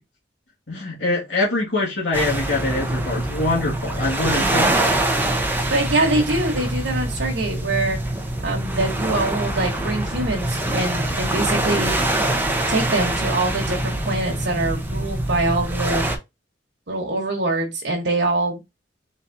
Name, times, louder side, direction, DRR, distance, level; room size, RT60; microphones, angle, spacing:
voice 1, 0.7-5.0, left 2 dB, 90° left, 1.9 m, -24 dB
sound 1, 2.1-16.2, right 1 dB, 10° right, 0.8 m, -24 dB
voice 2, 5.7-8.0 8.4-11.9 12.7-16.1 16.9-18.6, right 2 dB, 80° right, 1.3 m, -24 dB
4.2 x 4.0 x 2.6 m
head